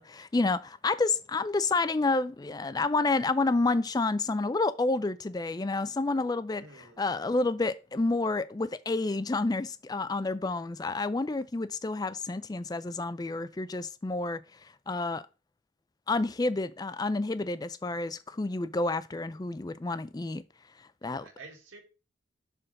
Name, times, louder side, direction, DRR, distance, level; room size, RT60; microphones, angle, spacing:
voice 1, 0.0-6.6 7.0-15.2 16.1-20.4 21.0-21.2, left 3 dB, 20° left, 0.3 m, -29 dB
voice 2, 6.6-7.2 21.0-21.8, right 3 dB, 80° right, 2.0 m, -50 dB
6.7 x 3.8 x 5.2 m
head